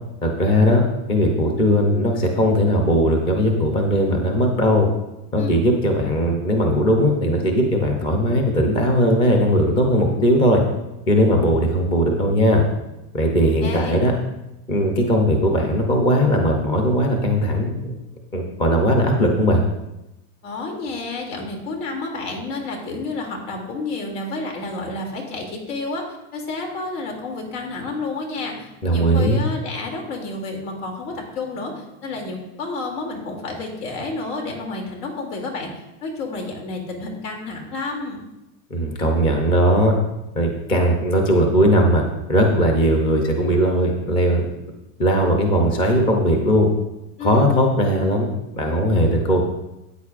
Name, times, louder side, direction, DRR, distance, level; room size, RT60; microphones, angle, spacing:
voice 1, 0.2-0.8 1.1-4.9 5.3-10.6 11.1-12.6 13.1-14.1 14.7-18.0 18.3-19.6 28.8-29.4 38.7-39.9 40.3-42.0 42.3-44.5 45.0-46.7 47.2-48.3 48.6-49.4, equal, 10° left, 2 dB, 0.5 m, -18 dB
voice 2, 13.6-14.0 20.4-35.7 36.0-38.2 47.2-47.5, left 3 dB, 85° left, 1 dB, 2.7 m, -30 dB
13.0 x 8.7 x 2.4 m, 0.94 s
supercardioid pair, 170°, 45 cm